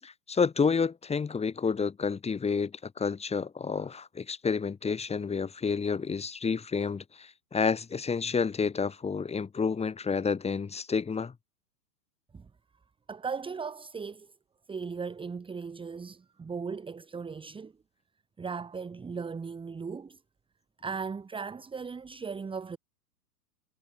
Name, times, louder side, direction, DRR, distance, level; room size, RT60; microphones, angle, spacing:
voice 1, 0.0-11.3, left 5 dB, 15° left, 7.5 m, -30 dB
voice 2, 13.1-14.3 14.7-17.7 18.4-20.2 20.8-22.8, right 5 dB, 10° right, 2.8 m, -37 dB
figure-of-eight pair, 110°, 48 cm